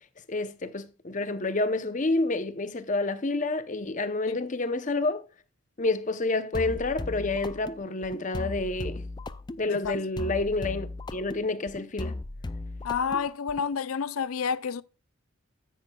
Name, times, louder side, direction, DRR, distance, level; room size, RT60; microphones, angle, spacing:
voice 1, 0.3-5.2 5.8-9.0 9.6-12.2, left 2 dB, 35° left, 0.8 m, -29 dB
sound 1, 6.5-13.7, left 2 dB, 20° left, 0.4 m, -37 dB
voice 2, 12.8-14.8, left 6 dB, 90° left, 0.5 m, -29 dB
10.0 x 9.5 x 2.3 m
head